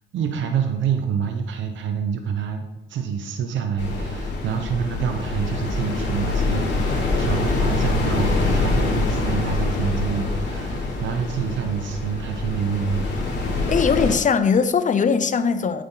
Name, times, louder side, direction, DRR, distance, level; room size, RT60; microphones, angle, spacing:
voice 1, 0.1-13.0, right 7 dB, 70° right, 5 dB, 0.9 m, -27 dB
sound 1, 3.8-14.1, left 3 dB, 60° left, 2.7 m, -24 dB
voice 2, 13.7-15.8, left 6 dB, 40° left, 11 dB, 0.7 m, -20 dB
9.1 x 6.7 x 3.9 m, 1.0 s
cardioid pair, 90°, 20 cm